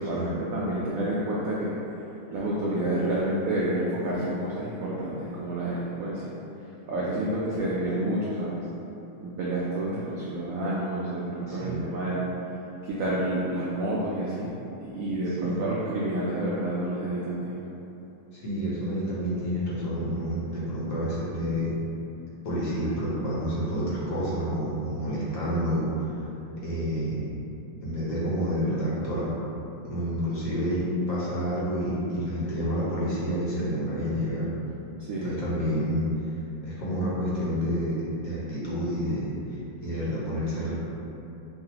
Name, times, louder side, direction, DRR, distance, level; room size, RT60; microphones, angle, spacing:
voice 1, 0.0-1.7 2.3-6.3 6.9-8.6 9.2-12.2 12.9-14.5 14.8-17.6 35.1-35.3, right 1 dB, 90° right, -6 dB, 0.7 m, -29 dB
voice 2, 11.5-11.8 15.3-15.6 18.3-21.7 22.4-26.1 26.6-27.2 27.8-29.3 29.8-34.5 35.2-36.1 36.6-39.3 39.8-40.8, equal, 55° left, -8 dB, 1.2 m, -29 dB
5.7 x 2.3 x 2.8 m, 2.9 s
omnidirectional pair, 2.1 m